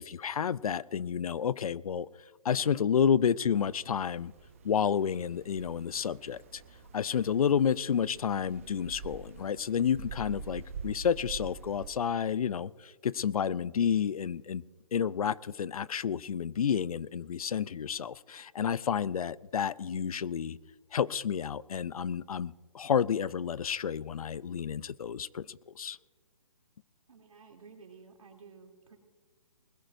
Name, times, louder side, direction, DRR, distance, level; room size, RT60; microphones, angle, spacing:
voice 1, 0.0-2.1 2.4-4.3 4.6-6.6 6.9-14.6 14.9-20.6 20.9-26.0, left 7 dB, 80° left, 20 dB, 0.5 m, -30 dB
sound 1, 3.5-11.9, right 5 dB, 25° right, 0.8 m, -46 dB
voice 2, 27.1-29.0, right 5 dB, 75° right, 2 dB, 3.0 m, -53 dB
21.0 x 16.0 x 2.6 m, 1.4 s
hypercardioid pair, 175°, 18 cm